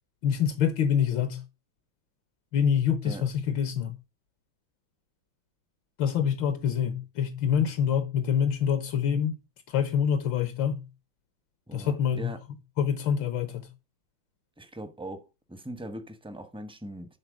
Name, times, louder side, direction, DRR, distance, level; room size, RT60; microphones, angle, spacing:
voice 1, 0.2-1.4 2.5-3.9 6.0-9.3 9.7-10.8 11.7-12.3 12.8-13.7, left 8 dB, 75° left, 1.7 m, -26 dB
voice 2, 11.7-12.4 14.6-15.2 15.5-17.2, right 1 dB, 5° right, 0.6 m, -40 dB
11.0 x 4.4 x 6.3 m
omnidirectional pair, 2.1 m